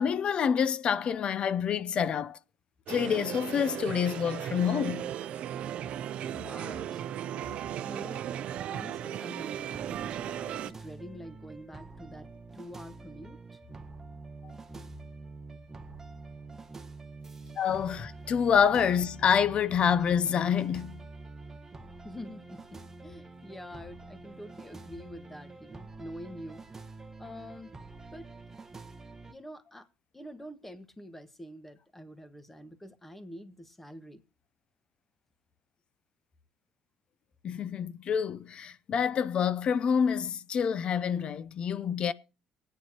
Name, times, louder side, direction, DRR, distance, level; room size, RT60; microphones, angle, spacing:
voice 1, 0.0-2.4 2.9-5.1 17.6-21.0 37.4-42.1, left 7 dB, 50° left, 0.6 m, -27 dB
sound 1, 2.9-10.7, right 10 dB, 60° right, 0.5 m, -36 dB
voice 2, 6.2-7.0 7.3-8.4 8.7-13.6 22.0-26.9 27.2-27.7 28.1-28.3 29.3-29.9 30.1-34.2, equal, 10° left, 1.6 m, -46 dB
sound 2, 9.5-29.3, right 3 dB, 20° right, 1.3 m, -46 dB
23.5 x 9.4 x 3.0 m
cardioid pair, 95°, 2 cm